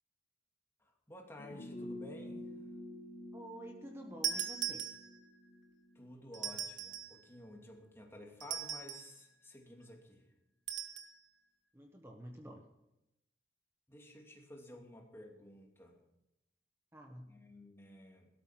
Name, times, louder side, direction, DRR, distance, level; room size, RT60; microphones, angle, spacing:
voice 1, 0.8-2.5 5.9-10.2 13.9-16.0 17.3-18.3, left 1 dB, 15° left, 0 dB, 2.7 m, -53 dB
sound 1, 1.4-6.6 6.9-7.0, left 1 dB, 65° left, 2.8 m, -49 dB
voice 2, 3.3-4.9 11.7-12.6 16.9-17.3, right 1 dB, 15° right, 2 dB, 1.2 m, -49 dB
sound 2, 4.2-5.4 6.3-7.2 8.4-9.2 10.7-11.1, right 8 dB, 80° right, 1.6 m, -39 dB
17.5 x 12.5 x 5.9 m, 0.88 s
head